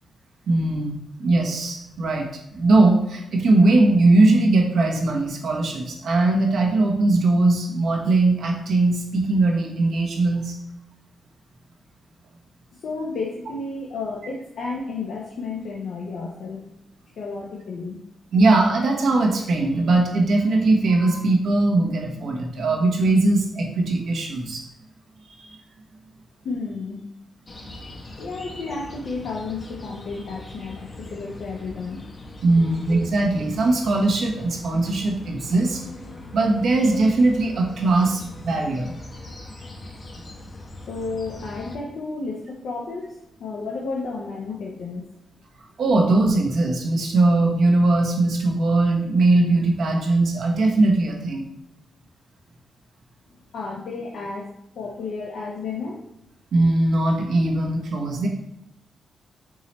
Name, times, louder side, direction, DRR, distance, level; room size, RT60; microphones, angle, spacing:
voice 1, 0.5-2.3 2.5-10.5 18.3-24.6 25.3-25.6 32.4-35.8 36.3-38.9 45.8-51.4 56.5-58.3, right 2 dB, 70° right, 1 dB, 0.9 m, -20 dB
voice 2, 12.7-16.6 17.1-18.0 26.4-27.0 28.2-32.1 32.6-32.7 40.5-40.6 40.9-45.0 53.5-56.0, left 4 dB, 75° left, -2 dB, 0.6 m, -32 dB
sound 1, 27.5-41.8, left 2 dB, 45° left, 0.8 m, -41 dB
4.6 x 3.0 x 3.0 m, 0.81 s
supercardioid pair, 55°, 0 cm